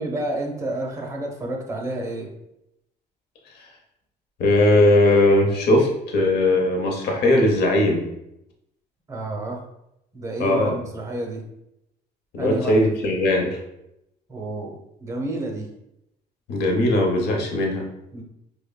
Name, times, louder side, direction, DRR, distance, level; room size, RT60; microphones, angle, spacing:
voice 1, 0.0-2.3 9.1-9.6 10.1-11.4 12.4-13.1 14.3-15.7 18.1-18.2, right 2 dB, 20° right, 1 dB, 0.8 m, -30 dB
voice 2, 4.4-8.0 10.4-10.8 12.3-13.6 16.5-17.9, left 1 dB, 75° left, 2 dB, 0.8 m, -19 dB
5.4 x 2.2 x 2.2 m, 0.83 s
cardioid pair, 110°, 17 cm